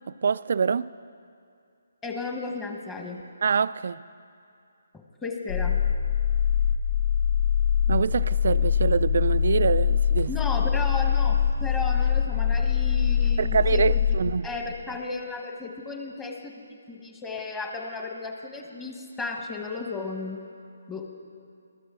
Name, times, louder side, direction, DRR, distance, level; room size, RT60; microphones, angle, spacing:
voice 1, 0.2-0.9 3.4-4.0 7.9-10.3 13.4-14.5, right 6 dB, 55° right, 0.3 m, -25 dB
voice 2, 2.0-3.2 4.9-5.8 10.3-13.8 14.4-16.5 16.9-20.4 20.9-21.1, left 3 dB, 10° left, 1.3 m, -34 dB
sound 1, 5.5-14.3, left 8 dB, 65° left, 3.2 m, -23 dB
22.5 x 13.5 x 3.8 m
figure-of-eight pair, 145°, 0 cm